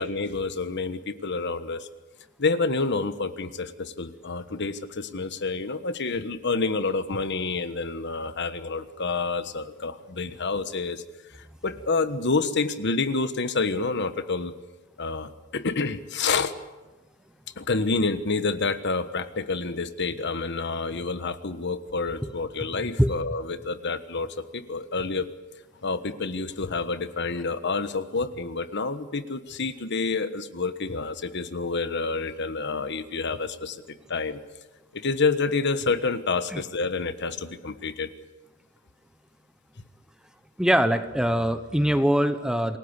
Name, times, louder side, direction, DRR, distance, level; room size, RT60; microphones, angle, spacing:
voice 1, 0.0-1.9 2.4-11.0 11.3-14.5 15.0-16.5 17.6-25.3 25.8-33.8 34.1-34.4 34.9-38.1, left 4 dB, 60° left, 11 dB, 1.3 m, -28 dB
voice 2, 40.6-42.8, equal, 5° right, 10 dB, 1.1 m, -22 dB
28.0 x 18.5 x 8.2 m, 1.2 s
head